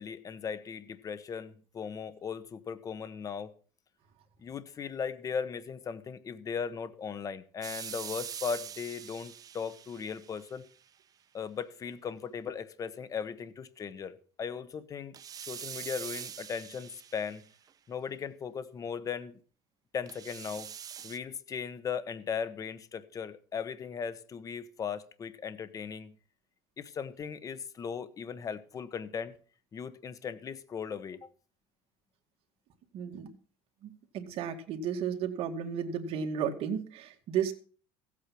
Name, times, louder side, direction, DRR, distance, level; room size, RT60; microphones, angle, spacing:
voice 1, 0.0-3.5 4.4-10.6 11.3-17.4 17.9-19.4 19.9-20.7 21.0-26.2 26.8-29.3 29.7-31.3, left 6 dB, 30° left, 1.1 m, -38 dB
sound 1, 7.6-10.7 15.1-17.7 20.1-21.2, right 8 dB, 30° right, 0.7 m, -43 dB
voice 2, 32.9-33.3 33.8-37.5, right 8 dB, 55° right, 2.3 m, -33 dB
15.5 x 8.5 x 6.0 m
cardioid pair, 140°, 12 cm